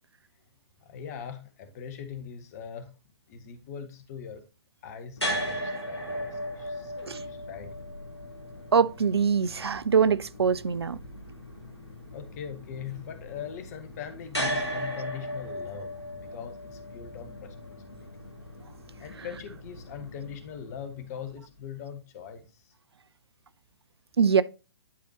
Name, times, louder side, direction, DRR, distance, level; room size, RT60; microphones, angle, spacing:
voice 1, 0.8-2.9 3.3-4.4 4.8-6.9 7.2-7.9 12.1-18.1 19.0-22.7, left 8 dB, 40° left, 1.3 m, -41 dB
sound 1, 5.2-21.3, equal, 90° left, 2.5 m, -37 dB
voice 2, 7.0-7.3 8.7-11.0 24.2-24.4, right 6 dB, 70° right, 0.4 m, -23 dB
11.0 x 4.2 x 2.9 m
figure-of-eight pair, 120°, 14 cm